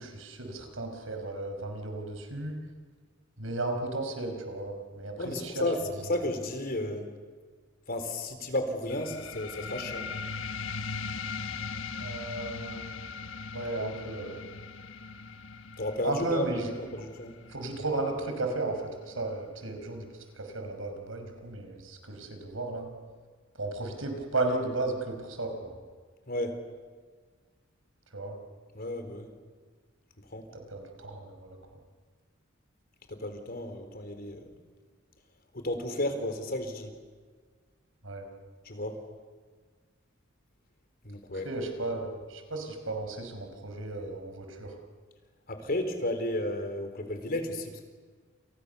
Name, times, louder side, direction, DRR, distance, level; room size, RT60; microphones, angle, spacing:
voice 1, 0.0-2.6 3.4-5.6 12.0-12.8 13.5-14.4 16.0-16.6 17.5-22.9 23.5-25.8 28.1-28.4 30.7-31.6 38.0-38.3 41.3-44.7, right 2 dB, 80° right, 5 dB, 5.5 m, -34 dB
voice 2, 5.2-5.8 6.0-7.1 7.9-10.1 13.8-13.9 15.8-17.3 26.3-26.6 28.7-29.3 30.3-30.5 33.1-34.5 35.5-36.9 38.6-39.0 41.0-41.5 45.5-47.8, left 1 dB, 50° left, 7 dB, 3.9 m, -33 dB
sound 1, 8.9-19.9, left 5 dB, 70° left, 1.3 m, -40 dB
29.5 x 28.5 x 6.9 m, 1.5 s
head